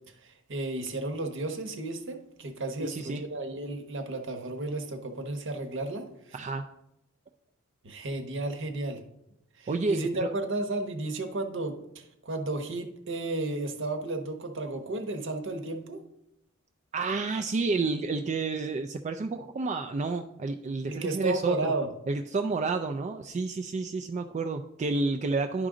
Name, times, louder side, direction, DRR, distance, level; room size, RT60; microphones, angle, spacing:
voice 1, 0.2-6.0 7.8-9.0 9.6-16.0 20.8-21.9, right 2 dB, 60° right, 5 dB, 1.0 m, -33 dB
voice 2, 2.8-3.2 6.3-6.6 9.7-10.3 16.9-21.7 22.1-25.7, right 3 dB, 35° right, 5 dB, 0.3 m, -30 dB
11.0 x 5.0 x 3.7 m, 0.83 s
head